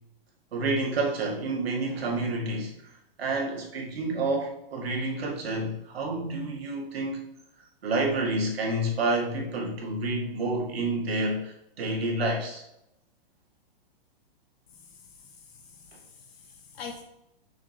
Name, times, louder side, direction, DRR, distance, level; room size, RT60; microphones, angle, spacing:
voice 1, 0.5-2.7 3.2-7.2 7.8-12.6, right 2 dB, 80° right, -1 dB, 2.1 m, -29 dB
voice 2, 14.7-17.0, left 5 dB, 85° left, 1 dB, 1.5 m, -46 dB
6.3 x 6.1 x 2.9 m, 0.84 s
hypercardioid pair, 165°, 30 cm